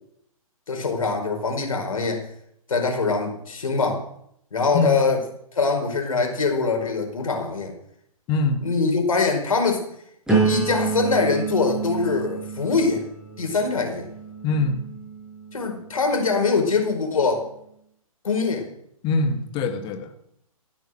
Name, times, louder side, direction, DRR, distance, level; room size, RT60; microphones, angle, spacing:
voice 1, 0.7-2.3 2.7-4.0 4.5-5.2 5.5-7.7 8.6-9.8 10.4-13.0 13.4-14.1 15.5-17.4 18.2-18.7, left 4 dB, 65° left, 3 dB, 4.8 m, -23 dB
voice 2, 8.3-8.6 14.4-14.8 19.0-20.1, left 3 dB, 25° left, 7 dB, 1.9 m, -23 dB
sound 1, 10.3-16.1 16.7-17.1, right 4 dB, 5° right, 5.5 m, -28 dB
15.0 x 9.4 x 7.9 m, 0.71 s
figure-of-eight pair, 130°, 19 cm